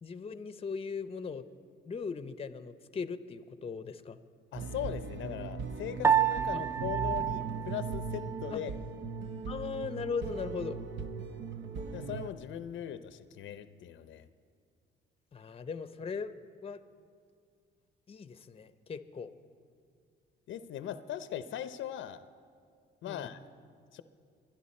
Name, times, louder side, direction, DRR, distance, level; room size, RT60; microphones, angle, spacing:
voice 1, 0.0-1.4 1.9-4.2 6.5-6.6 8.5-8.6 9.5-10.8 15.3-16.3 16.6-16.8 18.1-19.3 23.1-23.3, left 5 dB, 30° left, 12 dB, 0.7 m, -38 dB
voice 2, 4.5-8.7 11.9-14.3 20.5-22.2 23.0-23.4 23.9-24.0, left 10 dB, 75° left, 12 dB, 0.6 m, -39 dB
Guitar Music, 4.5-12.3, right 5 dB, 65° right, 0.8 m, -39 dB
Piano, 6.0-8.6, right 8 dB, 15° right, 0.3 m, -29 dB
23.5 x 10.5 x 4.3 m, 2.2 s
cardioid pair, 90°, 20 cm